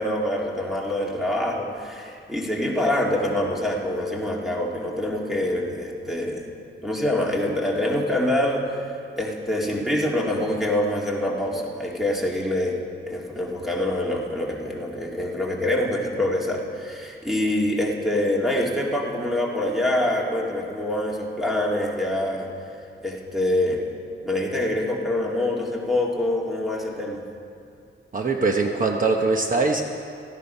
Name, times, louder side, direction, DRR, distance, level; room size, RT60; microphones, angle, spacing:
voice 1, 0.0-6.5 6.8-12.8 13.1-22.5 23.0-23.9 24.2-27.2, left 1 dB, ahead, -2 dB, 2.1 m, -25 dB
voice 2, 28.1-29.8, right 3 dB, 40° right, 3 dB, 1.0 m, -22 dB
17.5 x 14.5 x 5.5 m, 2.4 s
wide cardioid pair, 165°, 21 cm